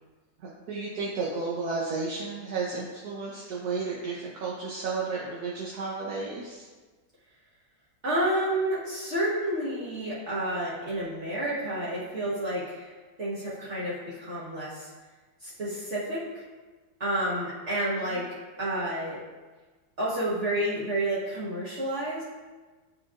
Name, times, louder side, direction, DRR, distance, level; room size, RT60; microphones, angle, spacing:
voice 1, 0.4-6.7 17.9-18.2, right 4 dB, 75° right, -5 dB, 1.3 m, -33 dB
voice 2, 8.0-12.9 13.2-14.9 15.4-16.4 17.0-18.2 18.6-19.2 20.0-22.2, right 1 dB, 50° right, -8 dB, 1.4 m, -30 dB
8.4 x 4.8 x 2.4 m, 1.3 s
omnidirectional pair, 1.7 m